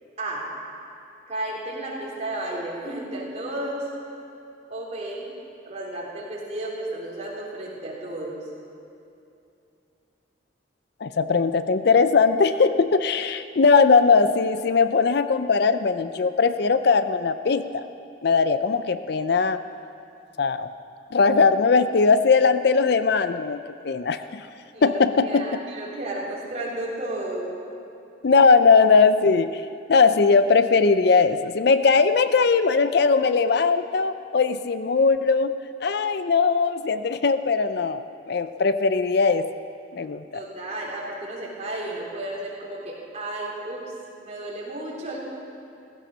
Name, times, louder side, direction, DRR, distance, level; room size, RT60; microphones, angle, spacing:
voice 1, 1.3-3.9 4.7-5.3 5.7-8.4 24.7-27.6 40.3-43.9 44.2-45.2, right 1 dB, 35° right, -4 dB, 3.5 m, -33 dB
voice 2, 11.0-17.9 18.2-19.6 20.4-20.7 21.1-24.4 24.8-25.4 28.2-29.6 29.9-35.5 35.8-39.5 39.9-40.4, left 4 dB, 55° left, 11 dB, 0.5 m, -20 dB
15.5 x 15.5 x 6.2 m, 2.7 s
head